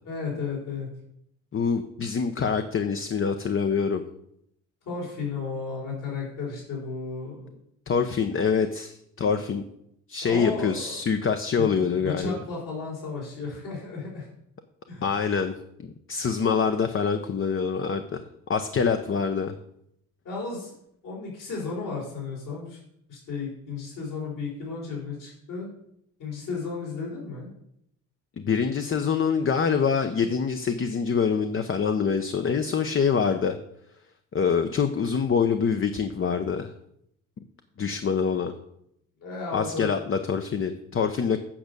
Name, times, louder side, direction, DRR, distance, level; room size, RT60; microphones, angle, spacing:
voice 1, 0.0-0.9 4.9-7.5 10.2-11.0 11.6-11.7 12.0-14.3 14.9-15.1 20.2-20.7 21.0-22.8 23.1-25.7 26.2-27.5 39.2-39.9, left 4 dB, 60° left, -4 dB, 4.1 m, -34 dB
voice 2, 1.5-4.0 7.9-9.6 10.1-12.4 15.0-15.5 15.8-18.2 18.5-19.5 28.4-33.6 34.3-36.7 37.8-38.5 39.5-41.4, left 6 dB, 35° left, 7 dB, 0.8 m, -25 dB
8.7 x 5.2 x 6.8 m, 0.75 s
supercardioid pair, 75°, 36 cm